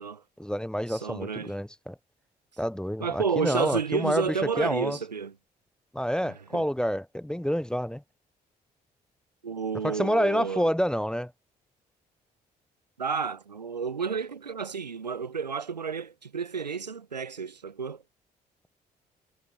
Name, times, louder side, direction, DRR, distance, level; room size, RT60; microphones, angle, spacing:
voice 1, 0.4-1.9 2.6-5.0 5.9-8.0 9.8-11.3, equal, 5° left, 0.7 m, -28 dB
voice 2, 0.9-1.5 3.0-5.3 6.2-6.7 9.4-10.7 13.0-18.0, right 6 dB, 90° right, 1.0 m, -31 dB
figure-of-eight pair, 45°, 21 cm